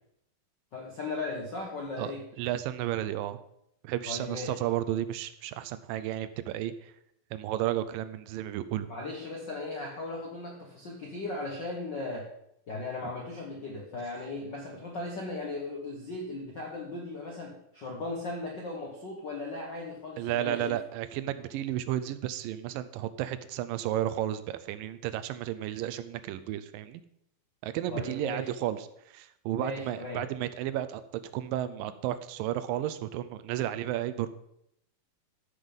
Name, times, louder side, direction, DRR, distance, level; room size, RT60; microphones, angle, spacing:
voice 1, 0.7-2.3 4.1-4.6 8.9-12.3 12.7-20.8 27.9-28.5 29.6-30.2, left 2 dB, 75° left, -1 dB, 1.0 m, -37 dB
voice 2, 2.4-3.4 3.8-6.9 7.3-8.9 20.2-27.0 27.6-31.0 31.3-34.3, right 12 dB, 80° right, 12 dB, 2.2 m, -33 dB
13.5 x 5.7 x 5.4 m, 0.77 s
omnidirectional pair, 4.2 m